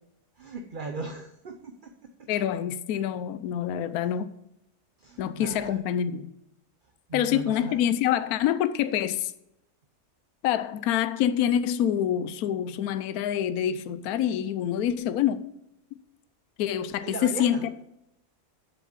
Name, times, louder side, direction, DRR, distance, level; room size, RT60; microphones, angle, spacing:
voice 1, 0.4-2.3 5.0-5.8 7.1-7.8 17.0-17.7, right 3 dB, 45° right, 5 dB, 0.7 m, -38 dB
voice 2, 2.3-4.3 5.2-6.3 7.1-9.3 10.4-15.4 16.6-17.7, left 10 dB, 75° left, 13 dB, 1.1 m, -26 dB
7.3 x 6.9 x 7.2 m, 0.83 s
omnidirectional pair, 1.7 m